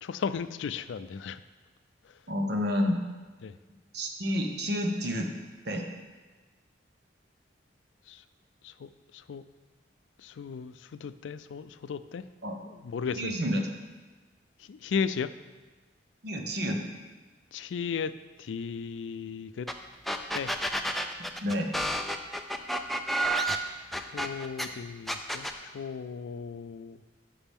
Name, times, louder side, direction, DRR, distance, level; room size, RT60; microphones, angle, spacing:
voice 1, 0.0-1.4 2.0-2.2 3.4-3.6 8.1-8.2 8.6-9.4 10.2-12.2 12.6-13.4 14.6-15.3 17.5-19.7 20.3-20.5 24.0-27.0, left 6 dB, 80° left, 13 dB, 0.4 m, -36 dB
voice 2, 2.3-3.0 3.9-5.3 5.7-5.9 12.4-12.6 13.2-13.6 16.2-16.8 21.4-21.7, equal, 60° right, 3 dB, 1.0 m, -29 dB
sound 1, 19.7-19.8 20.0-24.7 25.1-25.6, right 1 dB, ahead, 0.4 m, -30 dB
11.5 x 5.9 x 3.6 m, 1.3 s
head